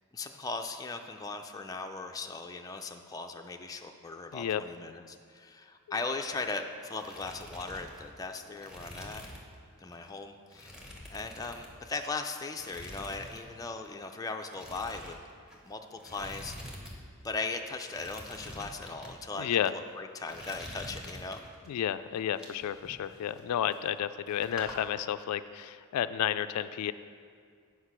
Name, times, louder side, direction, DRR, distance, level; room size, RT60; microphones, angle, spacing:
voice 1, 0.1-9.2 9.8-10.7 11.1-15.2 15.6-16.6 17.2-21.4, left 3 dB, 15° left, 4 dB, 0.4 m, -38 dB
sound 1, 6.1-6.6 6.8-9.6 9.9-10.1 10.5-12.1 12.5-13.4 13.7-13.9 14.5-17.0 17.2-17.3 17.8-19.1 19.7-19.9 20.2-21.7 22.1-24.0 24.3-24.8, left 1 dB, 5° right, 1.0 m, -46 dB
voice 2, 19.4-19.7 21.7-26.9, left 10 dB, 90° left, 13 dB, 0.3 m, -31 dB
8.3 x 4.8 x 5.9 m, 2.1 s
head